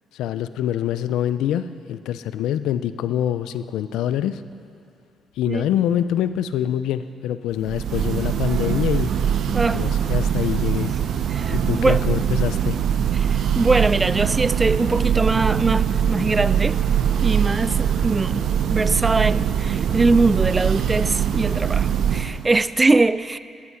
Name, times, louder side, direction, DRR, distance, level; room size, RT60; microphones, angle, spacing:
voice 1, 0.1-4.4 5.3-9.1 9.7-11.0 11.5-12.8, left 11 dB, 90° left, 13 dB, 0.5 m, -25 dB
Church bell, 7.6-22.5, right 8 dB, 70° right, 0.8 m, -22 dB
voice 2, 11.3-12.0 13.2-16.8 17.2-23.4, right 3 dB, 20° right, 16 dB, 0.4 m, -22 dB
14.5 x 12.5 x 5.7 m, 2.5 s
cardioid pair, 90°, 0 cm